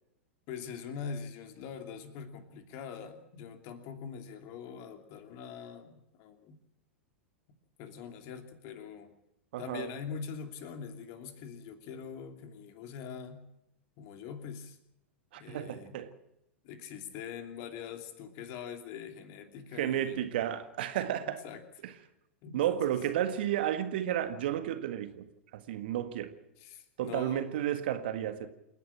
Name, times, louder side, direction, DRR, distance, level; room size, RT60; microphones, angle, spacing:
voice 1, 0.5-6.6 7.8-9.1 9.6-13.5 14.0-14.8 15.3-16.0 16.6-20.2 21.2-21.6 22.4-22.9 26.6-27.4, left 7 dB, 40° left, 2.9 m, -43 dB
voice 2, 9.5-9.9 15.3-16.1 19.7-21.4 21.8-21.9 22.5-26.4 27.0-28.5, right 11 dB, 55° right, 1.8 m, -32 dB
28.5 x 10.5 x 8.8 m
figure-of-eight pair, 95°, 7 cm